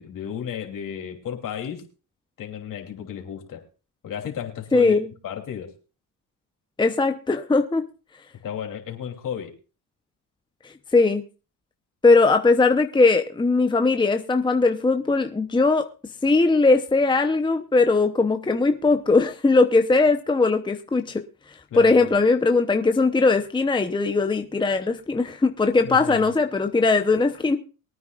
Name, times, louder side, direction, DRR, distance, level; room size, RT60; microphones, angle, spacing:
voice 1, 0.0-1.9 2.4-3.6 4.0-5.0 5.2-5.7 8.4-9.5 21.7-22.1 25.8-26.3, left 8 dB, 60° left, 3.1 m, -33 dB
voice 2, 4.7-5.1 6.8-7.8 10.9-11.2 12.0-15.8 16.2-21.2 21.8-27.6, left 3 dB, 15° left, 0.8 m, -19 dB
22.5 x 9.5 x 2.5 m
cardioid pair, 105°, 36 cm